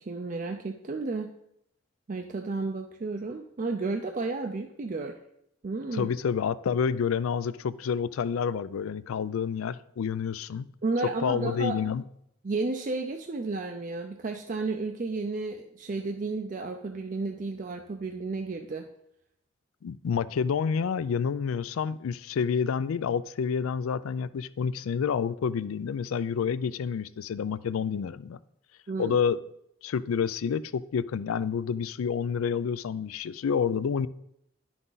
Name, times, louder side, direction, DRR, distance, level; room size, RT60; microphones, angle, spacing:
voice 1, 0.0-1.3 2.1-5.2 5.6-6.1 10.8-11.8 12.4-18.9 28.9-29.2, right 3 dB, 40° right, 4 dB, 0.4 m, -32 dB
voice 2, 5.9-10.7 11.2-12.0 19.8-28.4 29.0-29.4 29.8-34.1, left 6 dB, 85° left, 16 dB, 0.4 m, -29 dB
10.5 x 6.0 x 3.9 m, 0.78 s
head